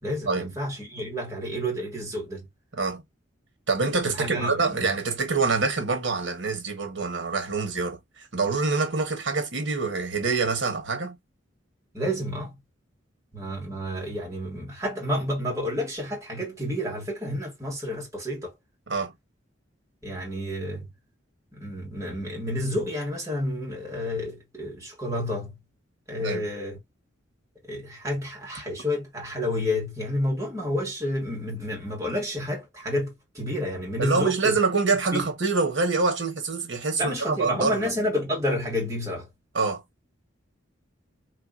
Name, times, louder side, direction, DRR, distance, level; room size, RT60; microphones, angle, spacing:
voice 1, 0.0-2.5 4.0-5.0 11.9-12.6 13.3-18.5 20.0-20.9 21.5-25.6 26.1-26.8 27.6-34.6 35.1-35.3 37.0-39.3, left 1 dB, 15° right, 1.5 m, -30 dB
voice 2, 3.7-11.2 18.9-19.1 26.2-26.5 34.0-37.9 39.5-39.8, right 4 dB, 70° right, 1.0 m, -26 dB
3.1 x 2.6 x 2.4 m
head